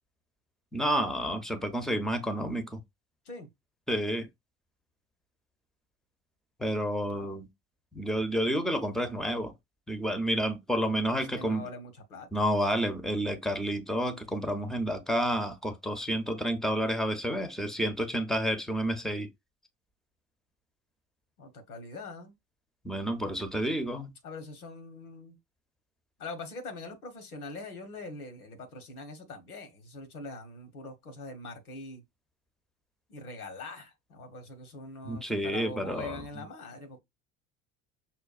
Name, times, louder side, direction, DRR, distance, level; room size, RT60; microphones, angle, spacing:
voice 1, 0.7-2.8 3.9-4.3 6.6-7.5 7.9-9.5 9.9-11.7 12.3-19.3 22.8-24.1 35.0-36.2, equal, ahead, 0.6 m, -30 dB
voice 2, 7.1-7.4 11.3-12.3 21.4-22.3 24.2-25.4 26.2-32.0 33.1-37.0, left 2 dB, 85° left, 1.0 m, -43 dB
5.7 x 2.2 x 2.4 m
hypercardioid pair, 70°, 43 cm